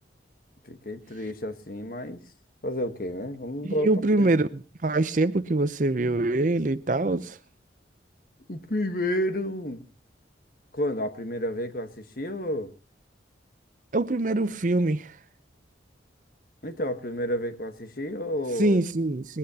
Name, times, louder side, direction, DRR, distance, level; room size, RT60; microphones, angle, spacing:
voice 1, 0.6-2.2 2.6-4.3 8.5-9.9 10.7-12.7 16.6-18.8, equal, 50° left, 1.3 m, -31 dB
voice 2, 3.6-7.4 13.9-15.2 18.6-19.4, right 2 dB, 45° right, 0.6 m, -24 dB
20.5 x 17.0 x 2.8 m
head